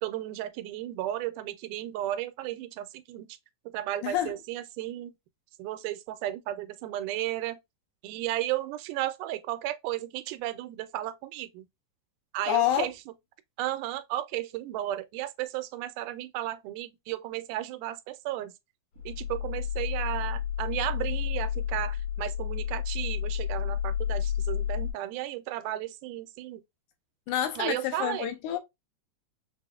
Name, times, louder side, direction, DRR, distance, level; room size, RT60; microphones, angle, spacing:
voice 1, 0.0-3.3 3.7-5.1 5.6-7.6 8.0-11.7 12.3-12.9 13.6-18.5 19.1-26.6 27.6-28.4, right 14 dB, 85° right, 2.1 m, -34 dB
voice 2, 4.0-4.4 12.5-12.9 27.3-28.6, left 11 dB, 80° left, 2.0 m, -28 dB
sound 1, 19.0-24.9, left 9 dB, 65° left, 2.2 m, -31 dB
5.9 x 2.0 x 2.3 m
omnidirectional pair, 3.5 m